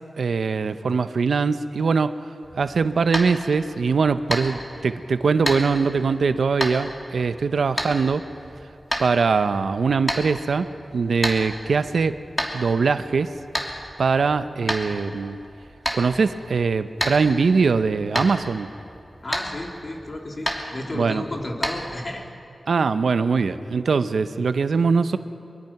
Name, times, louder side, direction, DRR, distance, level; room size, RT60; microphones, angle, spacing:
voice 1, 0.2-2.1 2.5-8.3 9.0-12.2 12.5-13.3 14.0-15.4 15.9-18.7 20.9-21.2 22.7-25.2, right 5 dB, 85° right, 11 dB, 0.7 m, -22 dB
sound 1, 2.4-22.3, equal, 20° left, 2.8 m, -32 dB
voice 2, 19.2-22.3, left 1 dB, 50° left, 1 dB, 3.0 m, -32 dB
23.0 x 22.5 x 5.9 m, 2.7 s
cardioid pair, 55°, 0 cm